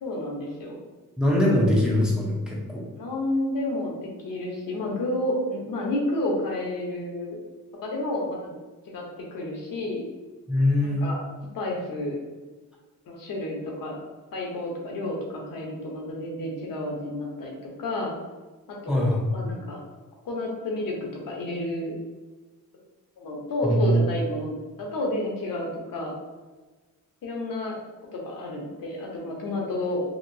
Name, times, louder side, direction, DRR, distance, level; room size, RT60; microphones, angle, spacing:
voice 1, 0.0-0.7 3.0-7.4 7.8-8.4 8.9-9.0 9.3-10.0 10.8-11.2 11.5-12.2 13.1-14.0 14.3-18.1 18.7-19.8 20.2-21.0 21.2-21.9 23.2-26.2 27.2-27.8 28.1-30.0, left 1 dB, 75° left, -1 dB, 0.9 m, -30 dB
voice 2, 1.2-2.9 10.5-11.0 18.9-19.3 23.6-24.0, left 1 dB, ahead, -4 dB, 0.6 m, -22 dB
2.9 x 2.8 x 2.6 m, 1.3 s
cardioid pair, 135°, 34 cm